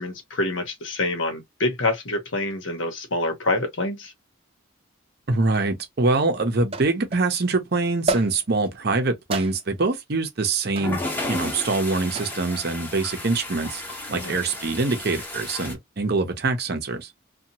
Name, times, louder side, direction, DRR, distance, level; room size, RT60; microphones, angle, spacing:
voice 1, 0.0-4.1 14.1-14.4, left 2 dB, 70° left, 1.0 m, -26 dB
voice 2, 5.3-13.8 14.1-17.1, right 3 dB, 50° right, 0.7 m, -24 dB
sound 1, 5.5-5.6 6.7-7.3 8.1-8.7 9.3-9.9 10.8-11.0 12.2-12.5 13.7-14.1, right 2 dB, 30° right, 0.3 m, -30 dB
sound 2, 10.8-15.7, left 1 dB, 10° left, 0.8 m, -33 dB
2.8 x 2.3 x 2.8 m
head